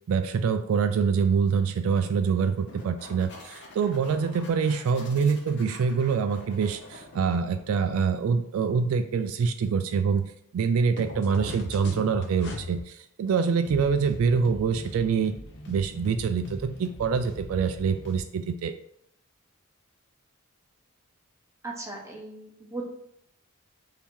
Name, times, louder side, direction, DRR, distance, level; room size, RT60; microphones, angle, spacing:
voice 1, 0.1-15.3 15.7-18.7, right 6 dB, 75° right, 9 dB, 0.3 m, -25 dB
sound 1, 2.0-7.9 11.0-12.8 13.7-18.2, left 1 dB, 55° left, 0.8 m, -41 dB
voice 2, 21.6-22.8, right 2 dB, 15° right, -2 dB, 0.8 m, -38 dB
3.5 x 2.8 x 4.5 m, 0.71 s
head